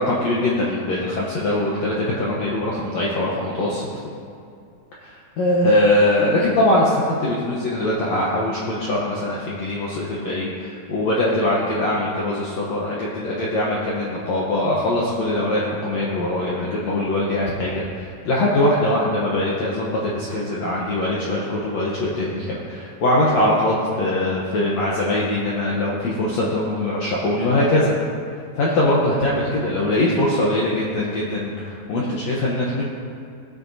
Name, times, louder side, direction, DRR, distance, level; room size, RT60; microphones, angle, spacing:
voice 1, 0.0-3.9 5.0-27.9 28.6-32.8, left 1 dB, 85° left, -5 dB, 1.5 m, -22 dB
18.0 x 8.8 x 2.7 m, 2.4 s
omnidirectional pair, 4.7 m